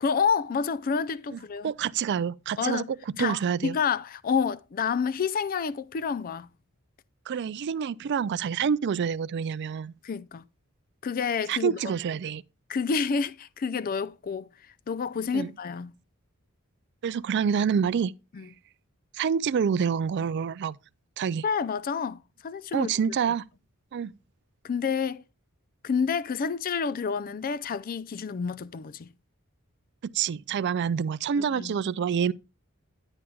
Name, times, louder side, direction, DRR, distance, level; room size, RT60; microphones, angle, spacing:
voice 1, 0.0-1.7 2.6-2.9 3.2-3.4 3.6-6.5 10.0-10.4 11.0-11.8 12.7-14.5 14.9-15.9 18.3-18.5 21.4-22.9 24.6-25.2 25.8-29.1 31.4-31.8, left 6 dB, 40° left, 0.4 m, -29 dB
voice 2, 1.3-2.8 3.2-3.8 7.3-9.9 11.5-12.4 15.3-15.5 17.0-18.1 19.1-20.8 21.2-21.4 22.7-23.4 23.9-24.1 30.0-32.3, right 7 dB, 55° right, 0.3 m, -27 dB
10.0 x 9.8 x 2.3 m
head